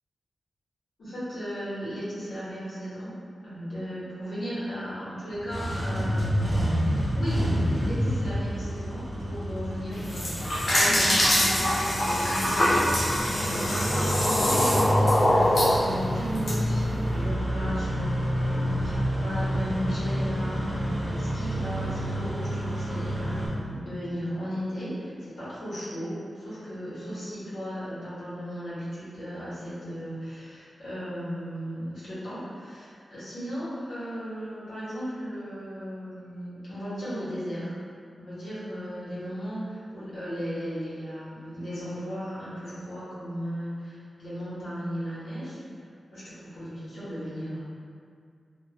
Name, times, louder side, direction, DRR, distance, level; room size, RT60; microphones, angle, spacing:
voice 1, 1.0-3.1 3.4-6.6 7.1-14.9 15.3-37.7 38.2-45.6 46.1-47.6, equal, 75° left, -13 dB, 1.0 m, -36 dB
Engine starting, 5.3-23.5, equal, 20° right, 0.9 m, -29 dB
sound 1, 9.9-16.5, left 1 dB, 40° left, 0.6 m, -24 dB
3.0 x 2.3 x 2.2 m, 2.2 s
wide cardioid pair, 175°, 0 cm